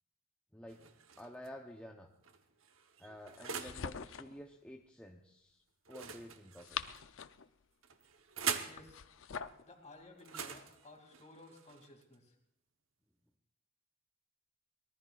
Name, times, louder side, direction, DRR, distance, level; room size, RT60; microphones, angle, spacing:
voice 1, 0.5-0.8 1.2-2.1 3.0-5.6 5.9-6.8, equal, 5° left, 1 dB, 0.8 m, -51 dB
sound 1, 0.7-1.5 2.2-3.9 5.8-7.0 7.8-8.8 10.2-12.1, right 7 dB, 70° right, 1.1 m, -43 dB
sound 2, 3.4-4.4 6.4-7.5 8.7-9.6, left 7 dB, 65° left, 0.6 m, -44 dB
voice 2, 8.6-9.0 9.6-12.3, left 2 dB, 35° left, 3 dB, 2.7 m, -56 dB
24.0 x 19.0 x 2.5 m, 0.75 s
head